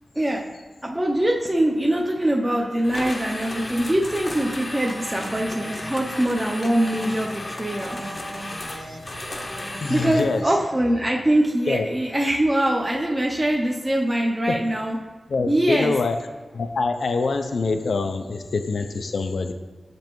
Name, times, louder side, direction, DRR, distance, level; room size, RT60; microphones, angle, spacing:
voice 1, 0.2-0.5 0.8-8.0 9.9-15.0 15.5-15.9, right 1 dB, 15° right, -1 dB, 0.5 m, -23 dB
sound 1, 2.8-10.4, left 1 dB, 40° left, 0.6 m, -34 dB
sound 2, 4.0-11.4, right 1 dB, 75° right, 0.7 m, -40 dB
voice 2, 9.8-10.4 11.7-11.9 14.5-14.6 15.3-16.2 16.5-19.5, left 4 dB, 75° left, 7 dB, 0.4 m, -24 dB
6.7 x 5.2 x 3.0 m, 1.4 s
wide cardioid pair, 115°, 0 cm